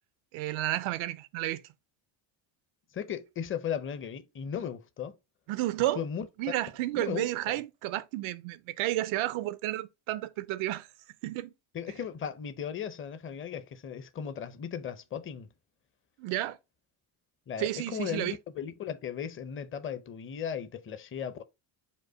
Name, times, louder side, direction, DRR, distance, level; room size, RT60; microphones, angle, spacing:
voice 1, 0.3-1.6 5.5-6.0 6.4-10.9 11.2-11.5 16.2-16.6 17.6-18.4, right 15 dB, 85° right, 0.6 m, -31 dB
voice 2, 2.9-5.1 6.0-6.3 6.9-7.3 11.7-15.5 17.5-21.4, left 8 dB, 25° left, 0.6 m, -36 dB
5.2 x 2.2 x 4.4 m
cardioid pair, 105°, 47 cm